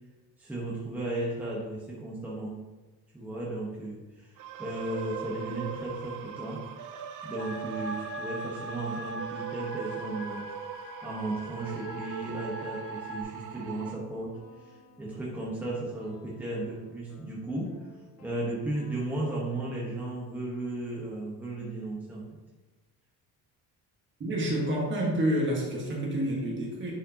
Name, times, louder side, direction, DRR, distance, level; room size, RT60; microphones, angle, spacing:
voice 1, 0.4-2.6 3.1-6.6 7.2-10.5 11.0-17.9 18.2-22.2, right 2 dB, 5° right, -5 dB, 1.1 m, -35 dB
sound 1, 4.4-13.9, right 8 dB, 55° right, 0.6 m, -40 dB
sound 2, 7.4-13.2, right 1 dB, 35° left, 0.6 m, -41 dB
sound 3, 13.4-19.5, left 2 dB, 80° left, 2.4 m, -56 dB
voice 2, 24.2-26.9, right 1 dB, 30° right, -2 dB, 1.6 m, -28 dB
10.5 x 5.1 x 2.9 m, 1.2 s
cardioid pair, 175°, 37 cm